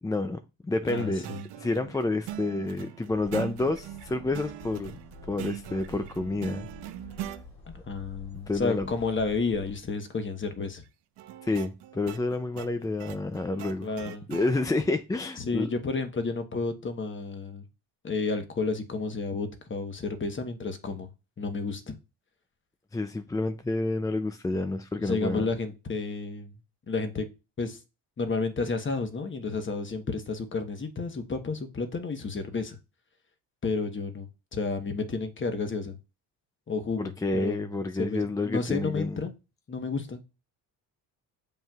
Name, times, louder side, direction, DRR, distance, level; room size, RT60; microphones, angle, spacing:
voice 1, 0.0-1.3 1.6-4.9 5.3-6.7 8.5-8.9 11.4-13.9 14.3-15.7 22.9-25.5 37.0-39.2, left 2 dB, 10° left, 0.4 m, -29 dB
voice 2, 0.9-1.4 7.8-10.8 13.8-14.3 15.4-17.6 18.0-21.1 21.4-22.0 25.0-26.5 26.9-27.3 27.6-27.8 28.2-32.7 33.6-36.0 36.7-37.7 38.0-39.3 39.7-40.2, left 4 dB, 30° left, 1.1 m, -31 dB
sound 1, 0.9-7.4 11.2-14.5, right 13 dB, 75° right, 0.8 m, -41 dB
sound 2, 3.1-9.8, left 2 dB, 65° left, 2.4 m, -48 dB
7.2 x 5.4 x 2.4 m
cardioid pair, 90°, 41 cm